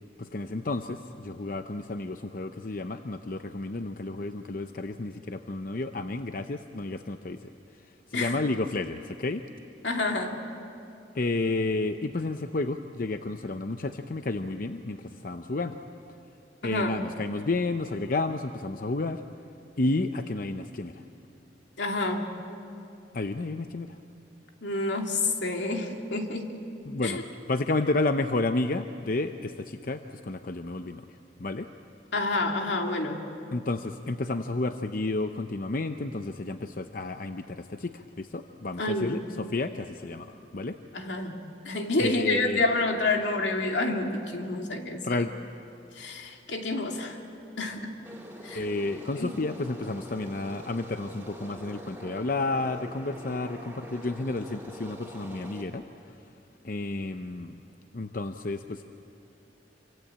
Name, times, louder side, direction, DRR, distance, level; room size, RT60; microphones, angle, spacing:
voice 1, 0.2-7.5 8.1-9.4 11.1-15.8 16.6-19.2 19.8-21.0 23.1-24.0 26.9-27.2 27.5-31.1 31.4-31.7 33.5-40.8 42.0-42.6 45.0-45.3 48.5-55.8 56.6-57.6 57.9-58.9, left 2 dB, 50° left, 8 dB, 0.7 m, -31 dB
voice 2, 9.8-10.3 16.6-17.0 21.8-22.3 24.6-26.5 27.0-27.2 32.1-33.2 38.8-39.2 40.9-41.4 41.6-45.3 45.9-47.2 47.6-47.9 48.4-48.6 49.2-49.3, left 2 dB, 85° left, 3 dB, 2.6 m, -28 dB
sound 1, 48.0-55.6, equal, 10° right, 3.3 m, -45 dB
26.5 x 25.0 x 8.6 m, 2.7 s
head